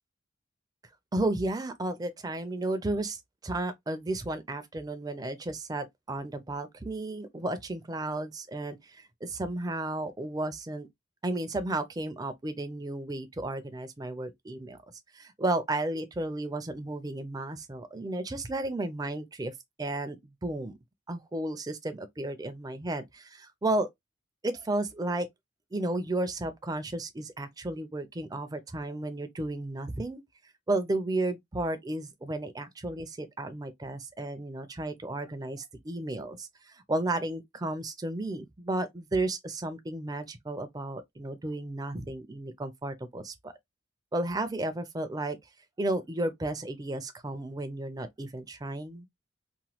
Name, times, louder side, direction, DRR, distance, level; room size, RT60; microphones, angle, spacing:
voice 1, 1.1-3.2 3.4-10.9 11.2-14.8 15.1-19.5 19.8-20.7 21.1-23.9 24.4-25.3 25.7-30.2 30.7-43.5 44.1-45.4 45.8-49.1, right 2 dB, 20° right, 0.4 m, -33 dB
3.0 x 2.2 x 2.8 m
head